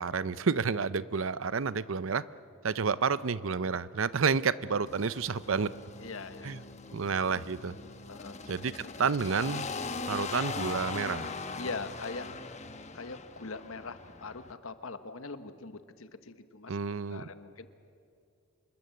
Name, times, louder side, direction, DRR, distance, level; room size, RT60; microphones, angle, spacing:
voice 1, 0.0-2.2 2.6-5.7 6.4-6.6 6.9-7.8 8.5-9.7 10.1-11.3 16.7-17.2, right 5 dB, 75° right, 17 dB, 0.6 m, -30 dB
sound 1, 4.9-14.5, left 4 dB, 35° left, 1.1 m, -40 dB
voice 2, 6.0-6.6 8.1-8.4 11.5-12.3 12.9-16.8 17.1-17.7, left 4 dB, 80° left, 11 dB, 1.2 m, -42 dB
27.0 x 21.0 x 7.7 m, 2.4 s
head